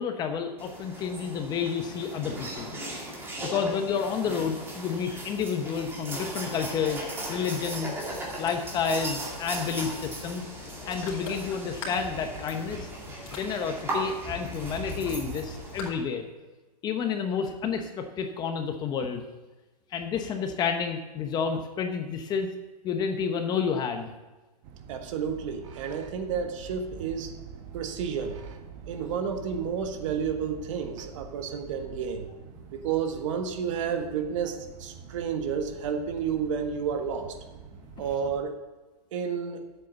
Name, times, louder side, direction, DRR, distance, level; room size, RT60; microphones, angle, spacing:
voice 1, 0.0-2.7 3.5-7.0 7.3-8.0 8.4-10.4 10.8-12.9 13.3-16.3 16.8-19.2 19.9-22.5 22.8-24.1, left 6 dB, 20° left, 6 dB, 0.8 m, -30 dB
sound 1, 0.6-15.9, right 1 dB, 10° right, 2.2 m, -37 dB
Ocean, 5.9-15.9, left 3 dB, 50° left, 3.7 m, -45 dB
sound 2, 24.6-38.4, right 7 dB, 35° right, 1.2 m, -45 dB
voice 2, 24.9-27.3 27.7-28.5 28.9-32.3 32.7-37.4 38.0-38.6 39.1-39.7, right 7 dB, 50° right, 6 dB, 1.6 m, -31 dB
10.0 x 8.0 x 6.9 m, 1.2 s
hypercardioid pair, 150°, 21 cm